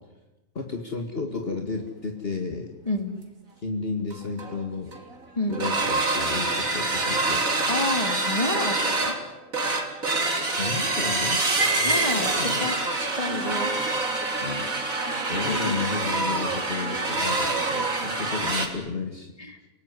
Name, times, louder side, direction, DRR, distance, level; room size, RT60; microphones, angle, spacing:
voice 1, 0.5-2.7 3.6-4.9 5.5-7.5 10.6-12.6 14.3-14.7 15.3-19.3 19.6-19.7, left 4 dB, 45° left, 3 dB, 2.3 m, -33 dB
sound 1, 4.1-4.2 4.4-4.6 4.9-5.1 5.5-18.7, right 2 dB, 75° right, 3.7 m, -26 dB
voice 2, 7.7-9.1 11.8-13.7 15.5-15.8 19.4-19.6, left 2 dB, 25° left, 6 dB, 3.1 m, -29 dB
30.0 x 19.0 x 9.7 m, 1.1 s
omnidirectional pair, 1.4 m